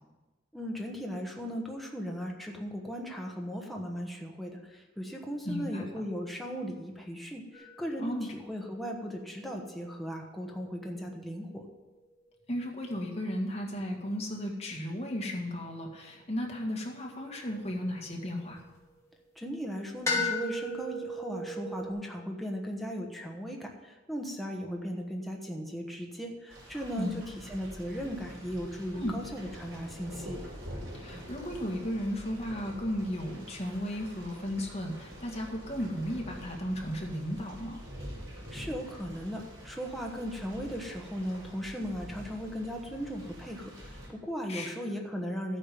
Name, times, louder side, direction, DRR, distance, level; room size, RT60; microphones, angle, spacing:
voice 1, 0.5-11.6 19.4-30.4 38.5-43.7 44.1-45.6, equal, ahead, 0 dB, 1.2 m, -37 dB
voice 2, 5.4-6.0 8.0-8.3 12.5-18.6 27.0-27.1 28.9-29.1 30.9-37.8 44.5-44.9, equal, 35° left, 0 dB, 2.0 m, -35 dB
sound 1, 7.5-11.8 16.1-18.7 20.1-21.9, left 2 dB, 15° left, 2.8 m, -37 dB
sound 2, 26.5-44.1, equal, 70° right, 5.1 m, -46 dB
13.5 x 8.6 x 5.3 m, 1.2 s
head